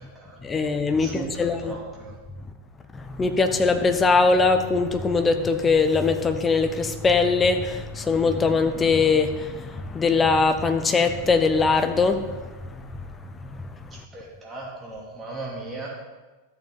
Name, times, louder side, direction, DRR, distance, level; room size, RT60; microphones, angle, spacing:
voice 1, 0.4-1.8 2.9-12.8 13.4-13.6, left 4 dB, 15° left, 8 dB, 0.9 m, -22 dB
voice 2, 1.0-2.1 14.1-15.9, right 3 dB, 20° right, -3 dB, 2.8 m, -36 dB
13.0 x 7.7 x 3.9 m, 1.2 s
figure-of-eight pair, 90°, 0 cm